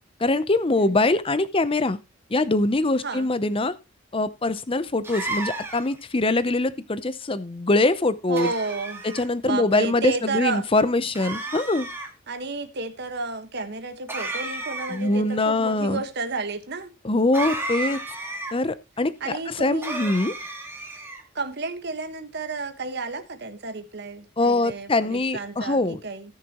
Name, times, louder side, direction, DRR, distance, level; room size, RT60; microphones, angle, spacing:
voice 1, 0.2-2.0 2.3-3.8 4.1-8.5 9.1-11.9 14.9-16.0 17.0-18.0 18.5-20.3 24.4-26.0, left 2 dB, 25° left, 0.7 m, -23 dB
sound 1, 5.0-6.0 8.4-9.2 11.1-12.1 14.1-15.1 17.3-18.5 19.8-21.2, right 2 dB, 10° right, 1.9 m, -33 dB
voice 2, 8.3-9.0 9.4-10.7 12.3-16.9 19.2-20.0 21.3-26.3, right 3 dB, 55° right, 1.4 m, -31 dB
17.5 x 6.6 x 3.0 m
head